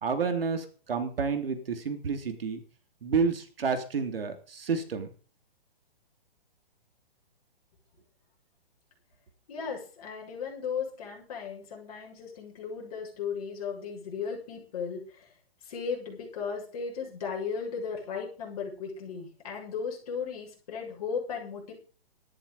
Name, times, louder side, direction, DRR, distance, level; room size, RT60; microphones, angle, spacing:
voice 1, 0.0-2.6 3.0-5.1, right 5 dB, 65° right, 8 dB, 3.4 m, -30 dB
voice 2, 9.5-15.3 15.6-21.7, left 6 dB, 35° left, -1 dB, 7.1 m, -36 dB
13.5 x 11.5 x 5.4 m, 0.38 s
hypercardioid pair, 175°, 31 cm